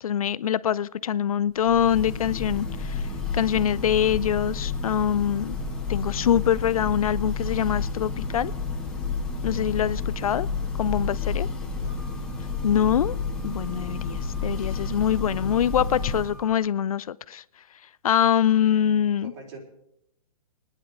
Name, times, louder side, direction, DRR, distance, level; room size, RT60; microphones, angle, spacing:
voice 1, 0.0-3.1 3.3-5.5 5.9-8.5 9.4-10.5 10.8-11.5 12.6-13.2 13.4-17.4 18.0-19.3, left 9 dB, 80° left, 0.4 m, -24 dB
Church bell, 1.6-16.5, left 4 dB, 5° left, 2.3 m, -30 dB
voice 2, 11.4-12.0 13.0-13.2 19.2-19.6, right 4 dB, 55° right, 3.8 m, -45 dB
Wind instrument woodwind instrument, 11.9-16.6, left 1 dB, 90° right, 7.3 m, -51 dB
22.0 x 10.0 x 3.8 m
hypercardioid pair, 135°, 18 cm